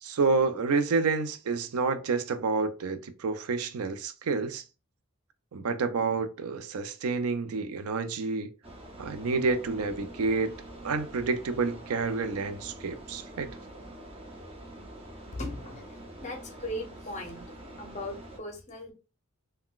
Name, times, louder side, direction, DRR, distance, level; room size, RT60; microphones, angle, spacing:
voice 1, 0.0-4.6 5.5-8.5 9.0-10.5 10.8-13.5, right 4 dB, 90° right, 0.4 m, -29 dB
sound 1, 8.6-18.4, right 1 dB, 25° right, 0.7 m, -45 dB
voice 2, 15.4-15.8 16.2-17.4 17.8-18.9, left 1 dB, 35° left, 0.6 m, -38 dB
3.7 x 2.2 x 2.3 m
head